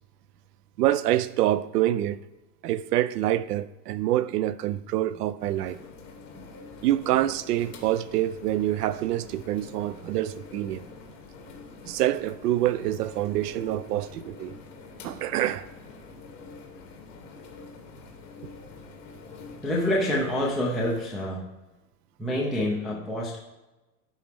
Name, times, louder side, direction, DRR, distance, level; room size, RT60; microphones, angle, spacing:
voice 1, 0.8-2.2 2.6-5.8 6.8-10.8 11.8-14.6 15.0-15.7, right 13 dB, 70° right, 0.6 m, -26 dB
sound 1, 5.4-21.0, left 4 dB, 50° left, 2.0 m, -46 dB
voice 2, 19.6-21.4 22.2-23.4, left 1 dB, ahead, 0.6 m, -27 dB
11.0 x 4.2 x 3.5 m
hypercardioid pair, 140°, 48 cm